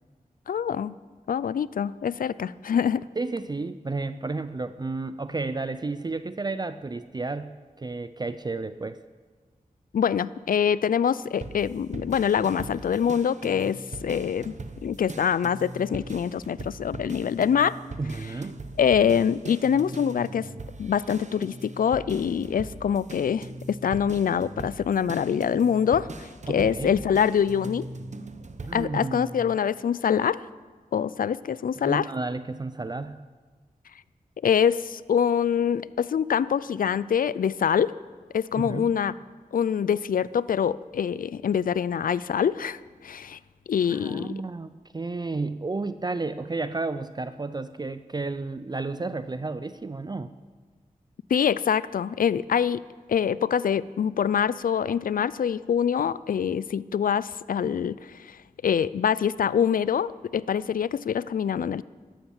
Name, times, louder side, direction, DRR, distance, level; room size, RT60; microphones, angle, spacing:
voice 1, 0.5-1.0 1.3-3.1 9.9-14.5 14.8-17.8 18.8-20.5 20.8-27.9 28.7-30.4 30.9-32.1 34.4-37.9 38.3-39.2 39.5-43.4 43.7-44.3 51.3-61.8, left 8 dB, 75° left, 18 dB, 0.4 m, -25 dB
voice 2, 3.2-9.0 18.0-18.6 26.5-27.0 28.7-29.5 31.8-33.2 38.5-38.9 43.9-50.3, right 3 dB, 30° right, 12 dB, 0.5 m, -32 dB
sound 1, 11.4-28.8, right 3 dB, 55° right, 0.9 m, -41 dB
13.0 x 12.0 x 7.2 m, 1.4 s
wide cardioid pair, 70°, 15 cm